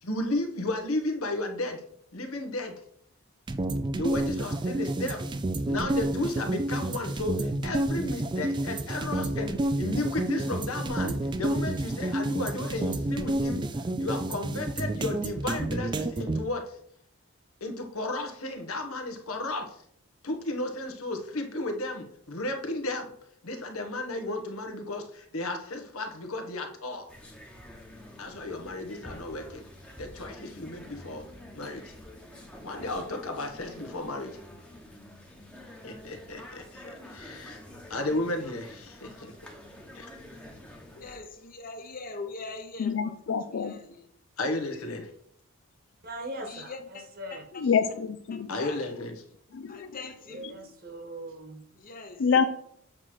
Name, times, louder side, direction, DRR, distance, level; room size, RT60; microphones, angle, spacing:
voice 1, 0.0-1.8 2.1-2.7 4.0-5.2 5.7-13.6 14.0-16.6 17.6-19.7 20.2-23.1 23.4-27.1 28.2-29.7 30.0-31.3 31.5-31.9 32.6-34.4 35.8-37.6 37.9-39.5 39.9-40.2 44.4-45.1 48.5-49.1, left 2 dB, 75° left, 1.2 m, -33 dB
sound 1, 3.5-16.4, right 1 dB, 20° right, 0.3 m, -30 dB
sound 2, 27.1-41.2, left 1 dB, 5° left, 1.0 m, -48 dB
voice 2, 40.9-43.2 43.5-44.1 46.4-47.0 47.3-47.6 48.3-48.9 49.7-50.7 51.7-52.3, left 3 dB, 40° left, 0.9 m, -42 dB
voice 3, 42.8-43.7 47.6-48.5 49.5-49.9 52.2-52.4, left 6 dB, 55° left, 0.4 m, -26 dB
voice 4, 46.0-47.7 50.2-51.6, right 1 dB, 40° right, 1.3 m, -41 dB
7.6 x 3.2 x 6.0 m
head